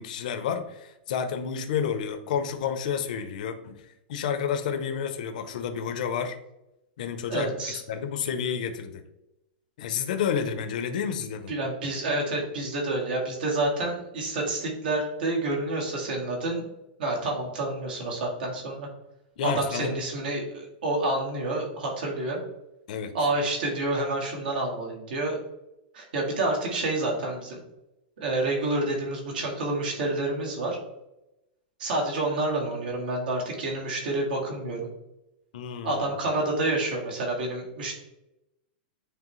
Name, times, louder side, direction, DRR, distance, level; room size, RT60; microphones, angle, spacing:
voice 1, 0.0-6.4 7.0-9.0 9.8-11.5 19.4-20.0 22.9-23.1 35.5-36.1, left 7 dB, 50° left, 7 dB, 0.7 m, -30 dB
voice 2, 7.3-7.8 11.5-16.7 17.0-18.9 19.4-22.4 23.1-25.4 25.9-27.6 28.2-30.8 31.8-34.9 35.8-37.9, right 2 dB, 65° right, -1 dB, 2.0 m, -28 dB
9.0 x 3.4 x 3.1 m, 0.90 s
supercardioid pair, 175°, 5 cm